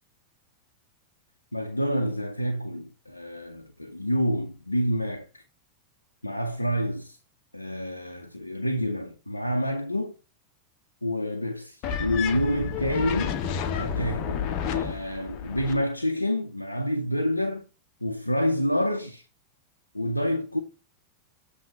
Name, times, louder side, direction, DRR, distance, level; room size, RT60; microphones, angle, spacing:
voice 1, 1.5-5.4 6.2-7.2 7.5-10.2 11.0-13.4 13.7-17.7 18.0-19.3 19.9-20.6, equal, 85° left, 0.6 m, -28 dB
sound 1, 11.8-15.8, left 7 dB, 40° left, 0.8 m, -30 dB
7.6 x 3.1 x 5.2 m
figure-of-eight pair, 90°, 0 cm